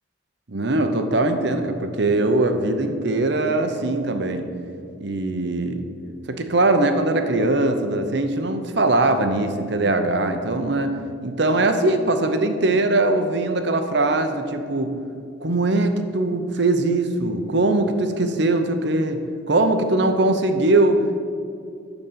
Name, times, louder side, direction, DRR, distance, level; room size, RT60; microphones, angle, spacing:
voice 1, 0.5-4.5 5.0-5.8 6.3-11.0 11.2-14.9 15.4-19.2 19.5-21.2, right 2 dB, 55° right, 7 dB, 0.8 m, -21 dB
12.0 x 4.1 x 7.4 m, 2.4 s
head